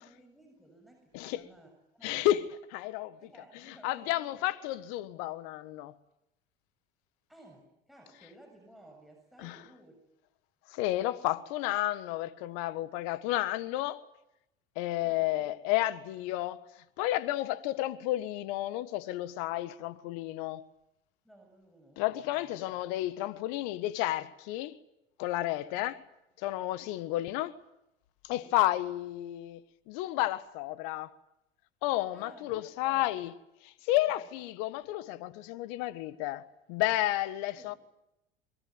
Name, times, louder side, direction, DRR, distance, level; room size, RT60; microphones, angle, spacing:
voice 1, 0.0-2.3 3.2-4.4 7.3-10.0 15.0-15.3 21.2-22.5 28.3-28.5 32.1-33.1 34.2-34.3 37.5-37.8, right 1 dB, ahead, 7.2 m, -56 dB
voice 2, 1.1-1.5 2.0-3.2 3.7-5.9 9.4-9.6 10.7-14.0 14.7-16.6 17.0-20.6 22.0-24.8 25.2-26.0 26.4-27.5 28.2-29.6 29.9-31.1 31.8-33.3 33.6-37.7, left 15 dB, 60° left, 1.5 m, -32 dB
23.5 x 23.0 x 9.6 m
hypercardioid pair, 80°, 30 cm